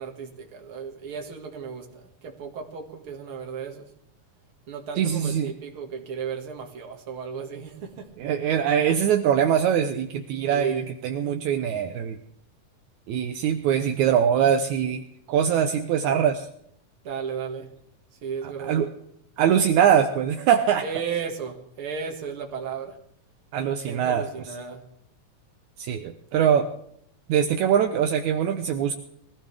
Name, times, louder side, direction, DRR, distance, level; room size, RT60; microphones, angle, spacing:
voice 1, 0.0-3.9 4.7-8.2 10.5-10.9 17.0-17.8 18.2-18.9 20.8-23.0 23.8-24.8, right 6 dB, 45° right, 2.6 m, -34 dB
voice 2, 5.0-5.5 8.2-12.2 13.1-16.5 18.6-18.9 19.4-20.8 23.5-24.3 25.8-26.7 27.3-28.9, right 8 dB, 75° right, 2.1 m, -22 dB
22.5 x 15.5 x 3.5 m
omnidirectional pair, 3.7 m